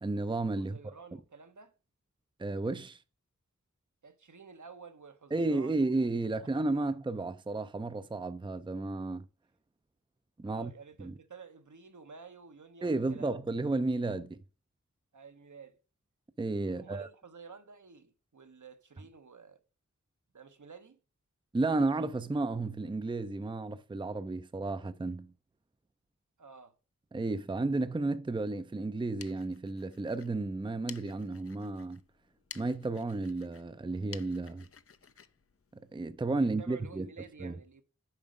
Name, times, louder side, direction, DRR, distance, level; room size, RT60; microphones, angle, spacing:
voice 1, 0.0-0.8 2.4-3.0 5.3-9.3 10.4-10.7 11.0-11.1 12.8-14.4 16.4-17.1 21.5-25.3 27.1-32.0 32.6-34.6 35.7-37.1 37.4-37.5, right 2 dB, 15° right, 0.5 m, -32 dB
voice 2, 0.6-1.7 4.0-5.9 6.4-6.5 6.8-6.9 10.4-13.4 15.1-15.8 16.7-19.6 20.3-21.0 26.4-26.7 36.4-37.8, right 5 dB, 70° right, 1.1 m, -51 dB
sound 1, 28.9-36.4, left 6 dB, 45° left, 0.5 m, -53 dB
7.3 x 5.0 x 5.2 m
cardioid pair, 45°, 32 cm